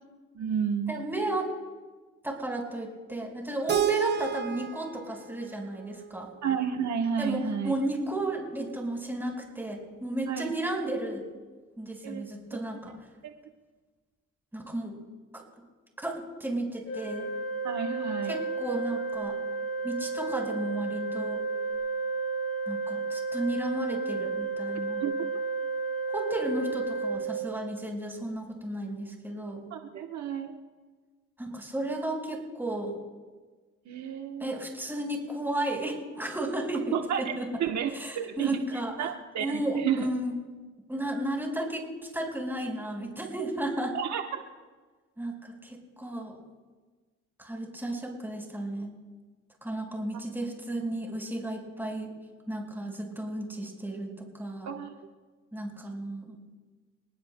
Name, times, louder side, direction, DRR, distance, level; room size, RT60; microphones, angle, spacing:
voice 1, 0.3-1.0 6.4-7.7 10.3-10.5 12.0-12.3 13.2-13.3 17.6-18.4 25.0-25.3 29.7-30.6 33.9-34.6 36.9-37.9 38.1-40.1 43.9-44.4 50.1-50.2 54.6-55.0, right 8 dB, 65° right, 4 dB, 1.1 m, -31 dB
voice 2, 0.9-1.5 2.2-6.3 7.2-11.2 11.8-12.9 14.5-14.9 15.3-15.4 16.0-17.3 18.3-19.4 19.8-21.4 22.7-25.0 26.1-29.6 31.4-32.9 34.4-36.9 37.4-37.5 38.0-38.9 39.4-40.3 40.9-43.9 45.2-46.4 47.4-48.9 49.6-52.1 52.5-54.7 55.5-56.4, right 1 dB, 5° right, 0 dB, 4.7 m, -33 dB
Keyboard (musical), 3.7-6.6, right 10 dB, 35° right, 0.7 m, -32 dB
Organ, 16.9-27.9, right 4 dB, 50° left, 4.7 m, -32 dB
28.0 x 19.5 x 2.2 m, 1.4 s
cardioid pair, 90°, 30 cm